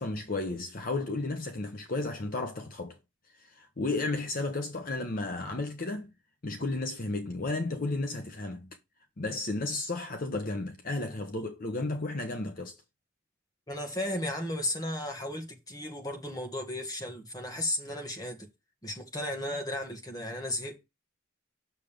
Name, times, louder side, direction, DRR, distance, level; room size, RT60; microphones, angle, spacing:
voice 1, 0.0-3.0 3.3-6.1 6.4-8.8 9.2-12.8, left 2 dB, 45° left, 0.9 m, -33 dB
voice 2, 13.7-18.5 18.8-20.8, left 1 dB, 20° left, 1.6 m, -34 dB
7.0 x 6.5 x 3.6 m
head